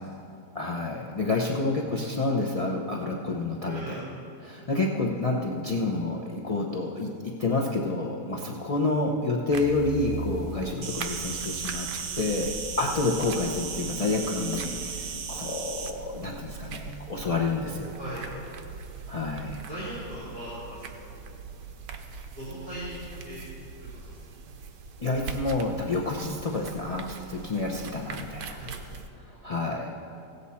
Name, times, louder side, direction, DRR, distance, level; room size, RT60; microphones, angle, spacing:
voice 1, 0.5-4.0 4.4-11.9 12.1-12.5 12.8-17.9 19.1-19.6 25.0-28.6 29.4-29.9, left 3 dB, 55° left, -2 dB, 0.4 m, -29 dB
voice 2, 3.7-4.1 17.9-18.3 19.7-21.2 22.3-23.4 23.8-24.2 28.5-28.8 29.3-29.7, right 1 dB, 30° right, -13 dB, 3.5 m, -39 dB
sound 1, 9.5-29.1, right 5 dB, 85° right, 1.4 m, -41 dB
Insect, 10.8-15.9, right 6 dB, 60° right, 0.5 m, -36 dB
17.0 x 8.0 x 4.2 m, 2.6 s
omnidirectional pair, 1.8 m